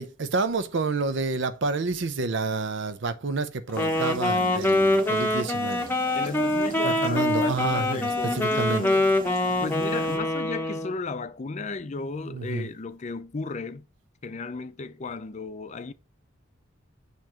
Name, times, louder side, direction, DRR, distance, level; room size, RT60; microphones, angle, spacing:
voice 1, 0.0-5.9 6.8-8.8 12.3-12.7, right 3 dB, 60° right, 0.6 m, -29 dB
Wind instrument woodwind instrument, 3.7-11.0, left 1 dB, 10° left, 0.8 m, -25 dB
sound 1, 3.7-10.2, right 2 dB, 40° right, 1.1 m, -42 dB
voice 2, 6.2-9.1 9.6-13.9 14.2-15.9, left 3 dB, 35° left, 0.5 m, -34 dB
6.9 x 3.1 x 5.6 m
head